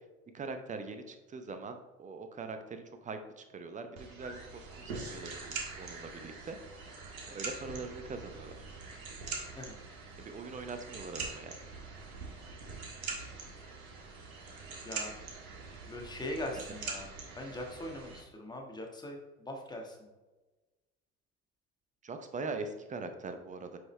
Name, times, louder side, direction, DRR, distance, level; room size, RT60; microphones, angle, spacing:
voice 1, 0.3-6.6 7.3-8.6 10.2-11.6 16.5-16.6 22.0-23.8, right 3 dB, 15° right, 7 dB, 0.7 m, -42 dB
sound 1, 4.0-18.2, right 4 dB, 70° right, 1.6 m, -43 dB
voice 2, 15.9-20.0, left 1 dB, 10° left, 1 dB, 1.5 m, -41 dB
7.7 x 5.5 x 3.2 m, 1.2 s
figure-of-eight pair, 75°, 44 cm